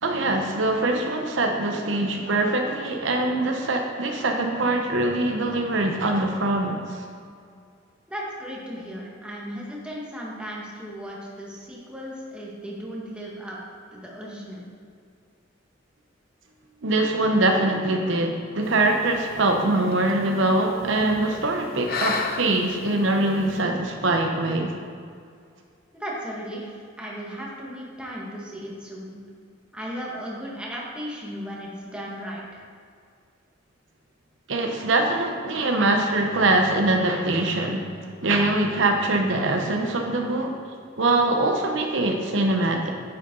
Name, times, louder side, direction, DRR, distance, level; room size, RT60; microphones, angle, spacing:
voice 1, 0.0-7.0 16.8-24.7 34.5-37.9 38.2-40.5 41.0-42.9, right 2 dB, 70° right, 3 dB, 0.9 m, -23 dB
voice 2, 8.1-13.6 13.9-14.6 25.9-29.2 29.7-32.6, equal, 5° right, -4 dB, 1.7 m, -36 dB
Woman female inhale exhale sigh breathing, 18.6-23.6, left 4 dB, 50° left, 0.8 m, -35 dB
9.4 x 8.2 x 3.9 m, 2.3 s
head